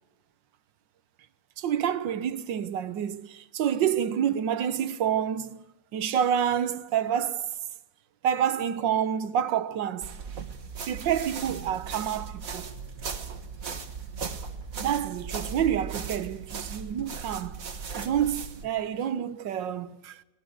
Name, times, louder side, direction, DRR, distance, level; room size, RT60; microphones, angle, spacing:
voice 1, 1.6-5.6 5.9-7.5 8.2-10.1 10.9-12.6 14.8-17.6 18.0-20.2, right 9 dB, 75° right, 1.6 m, -28 dB
sound 1, 10.0-18.6, right 6 dB, 45° right, 2.0 m, -37 dB
24.0 x 18.5 x 8.0 m
omnidirectional pair, 2.1 m